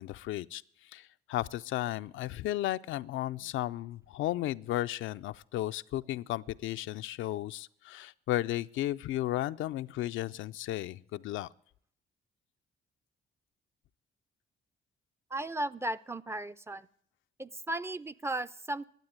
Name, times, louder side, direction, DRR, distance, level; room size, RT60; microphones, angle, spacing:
voice 1, 0.0-11.5, left 14 dB, 80° left, 12 dB, 0.5 m, -34 dB
voice 2, 15.3-16.9 17.4-18.8, right 1 dB, 15° right, 14 dB, 0.5 m, -35 dB
12.0 x 8.9 x 9.4 m, 0.63 s
cardioid pair, 90°, 20 cm